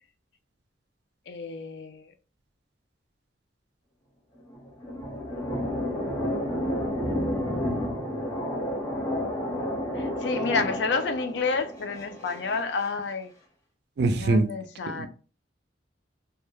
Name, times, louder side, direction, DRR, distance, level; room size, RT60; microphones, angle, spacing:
voice 1, 1.3-2.1 10.0-13.3 14.2-15.1, left 4 dB, 65° left, 0.4 m, -30 dB
sound 1, 4.4-12.9, left 1 dB, 15° left, 0.6 m, -31 dB
voice 2, 14.0-14.5 14.9-15.1, right 2 dB, 60° right, 0.4 m, -23 dB
2.2 x 2.1 x 3.0 m
head